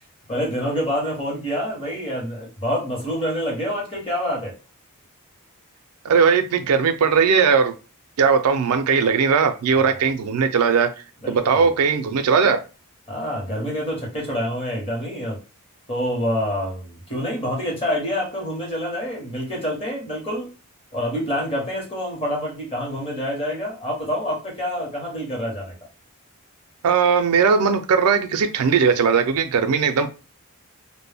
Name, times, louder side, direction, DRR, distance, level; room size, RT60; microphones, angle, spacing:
voice 1, 0.3-4.5 9.8-10.0 11.2-11.7 13.1-15.4 15.9-20.5 20.9-25.7, equal, 25° left, -2 dB, 0.9 m, -27 dB
voice 2, 6.0-7.7 8.2-10.9 11.3-12.6 26.8-30.1, right 6 dB, 90° right, 9 dB, 0.4 m, -18 dB
2.1 x 2.0 x 3.3 m, 0.33 s
head